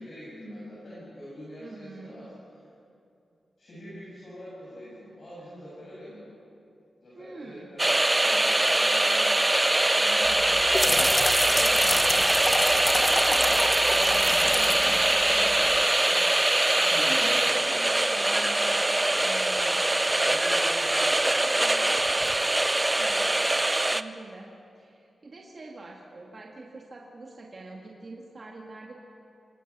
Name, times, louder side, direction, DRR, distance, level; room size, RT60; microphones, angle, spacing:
voice 1, 0.0-2.7 3.6-6.2 7.0-8.6 16.8-17.8 20.2-22.4, equal, 45° left, -8 dB, 7.1 m, -44 dB
voice 2, 1.6-2.3 7.1-7.7 8.8-9.3 9.6-11.2 11.5-12.2 12.5-17.7 18.1-20.4 23.0-23.3 23.9-24.5 24.8-29.0, right 2 dB, 35° right, -2 dB, 1.9 m, -44 dB
sound 1, 7.8-24.0, right 1 dB, 15° right, 0.5 m, -23 dB
sound 2, 10.3-15.8, left 1 dB, 20° left, 1.3 m, -29 dB
27.5 x 19.5 x 6.1 m, 2.6 s
wide cardioid pair, 150°, 0 cm